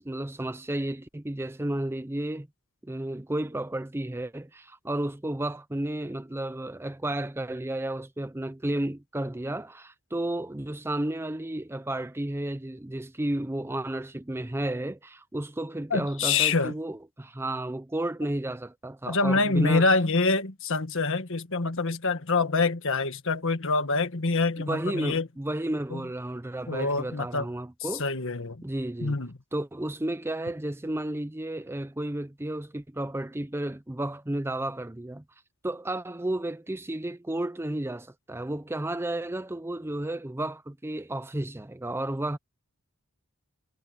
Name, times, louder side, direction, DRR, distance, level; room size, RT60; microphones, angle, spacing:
voice 1, 0.0-2.5 2.8-19.9 24.7-28.1 28.6-29.2 29.5-35.2 35.6-42.4, right 1 dB, 10° right, 0.5 m, -32 dB
voice 2, 15.9-16.7 19.1-25.3 25.9-26.0 26.7-27.4 28.0-28.7 29.0-29.4, left 3 dB, 60° left, 1.6 m, -26 dB
head